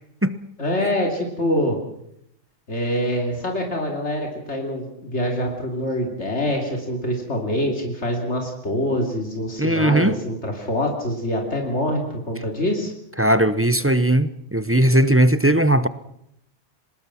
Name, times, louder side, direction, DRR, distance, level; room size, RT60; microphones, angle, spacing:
voice 1, 0.6-1.8 2.7-12.9, equal, 75° left, 2 dB, 3.3 m, -25 dB
voice 2, 9.6-10.2 13.2-15.9, right 1 dB, 15° right, 13 dB, 0.7 m, -18 dB
25.0 x 19.5 x 6.0 m, 0.76 s
omnidirectional pair, 1.2 m